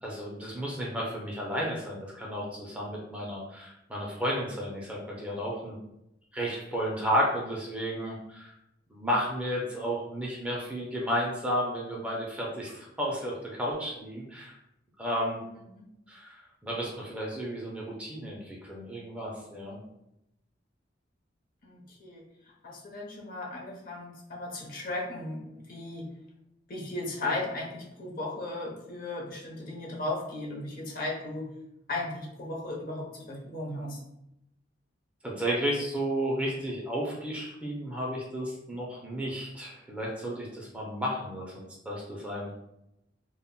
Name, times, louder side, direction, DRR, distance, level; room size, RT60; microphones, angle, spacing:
voice 1, 0.0-5.8 6.3-8.5 8.9-14.5 15.0-15.4 16.1-16.4 16.6-19.8 35.2-42.5, equal, 5° right, -4 dB, 0.4 m, -32 dB
voice 2, 21.6-26.1 26.7-31.5 31.9-34.0, left 2 dB, 50° left, -1 dB, 0.6 m, -36 dB
2.1 x 2.1 x 3.7 m, 0.85 s
head